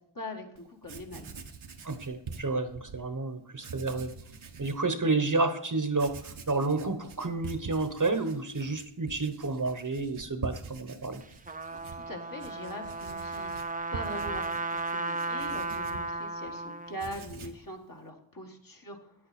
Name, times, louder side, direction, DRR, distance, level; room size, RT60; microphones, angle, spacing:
voice 1, 0.1-1.3 11.7-13.6 13.9-19.1, equal, 45° left, 1 dB, 1.9 m, -42 dB
Writing, 0.5-3.0 3.6-4.8 5.3-5.4 5.9-16.6 16.9-17.7, right 5 dB, 75° right, 1.1 m, -45 dB
voice 2, 1.8-4.1 4.6-11.2, right 3 dB, 40° right, 8 dB, 1.1 m, -30 dB
Trumpet, 11.2-17.2, right 3 dB, 15° right, 0.6 m, -35 dB
9.8 x 8.5 x 4.3 m, 0.72 s
wide cardioid pair, 45°, 49 cm